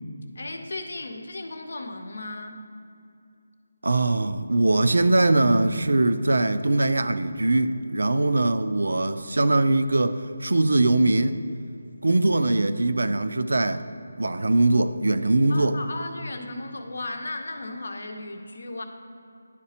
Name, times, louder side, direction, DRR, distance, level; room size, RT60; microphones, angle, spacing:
voice 1, 0.3-2.7 15.5-18.8, left 2 dB, 70° left, 5 dB, 0.7 m, -35 dB
voice 2, 3.8-11.4 12.0-13.9 14.2-15.8, right 2 dB, 85° right, 11 dB, 0.4 m, -21 dB
10.5 x 4.0 x 2.8 m, 2.5 s
figure-of-eight pair, 170°, 0 cm